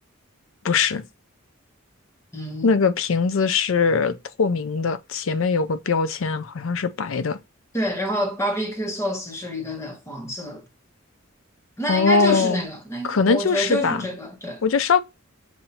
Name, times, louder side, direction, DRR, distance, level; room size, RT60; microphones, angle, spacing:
voice 1, 0.6-1.0 2.6-7.4 11.9-12.6 13.0-14.1 14.6-15.0, left 4 dB, 70° left, 0.5 m, -21 dB
voice 2, 2.3-2.7 7.7-10.6 11.8-14.6, equal, 15° left, 1.1 m, -28 dB
7.1 x 2.7 x 2.8 m
head